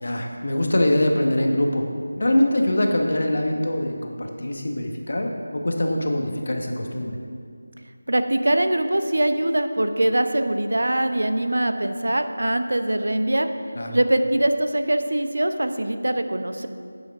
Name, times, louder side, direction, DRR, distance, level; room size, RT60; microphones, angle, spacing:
voice 1, 0.0-1.8 2.2-7.2 13.7-14.0, left 1 dB, 60° left, 2 dB, 1.2 m, -23 dB
voice 2, 8.1-13.5 13.9-16.7, right 1 dB, 80° right, 8 dB, 0.7 m, -22 dB
8.9 x 8.5 x 3.6 m, 2.3 s
figure-of-eight pair, 175°, 0 cm